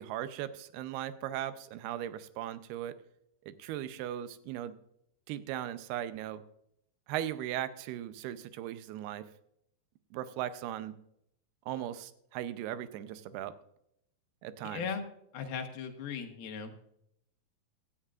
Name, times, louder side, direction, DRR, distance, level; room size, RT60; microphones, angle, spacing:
voice 1, 0.0-2.9 3.5-4.8 5.3-6.4 7.1-9.2 10.1-11.0 11.7-13.5 14.4-14.9, right 12 dB, 90° right, 12 dB, 2.7 m, -38 dB
voice 2, 14.6-15.0 15.3-16.7, left 6 dB, 75° left, 5 dB, 3.0 m, -37 dB
16.5 x 13.0 x 2.4 m, 0.76 s
omnidirectional pair, 4.5 m